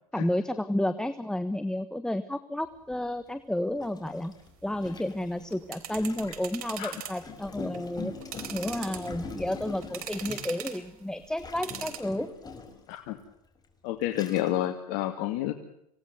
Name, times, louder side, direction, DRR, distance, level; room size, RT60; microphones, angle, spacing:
voice 1, 0.1-4.3 4.6-8.1 8.5-12.3, left 1 dB, 5° left, 11 dB, 1.4 m, -31 dB
Gurgling, 2.9-3.0 3.8-6.5 7.2-10.8 11.4-12.9 13.5-13.6 14.0-14.7, left 4 dB, 20° left, 5.5 m, -42 dB
sound 1, 5.4-7.2 7.6-7.8 8.2-9.3 9.8-10.9 11.5-12.0, right 10 dB, 75° right, 3.8 m, -40 dB
voice 2, 13.8-15.5, left 13 dB, 60° left, 6 dB, 2.4 m, -29 dB
27.0 x 18.5 x 8.0 m, 0.81 s
hypercardioid pair, 105°, 19 cm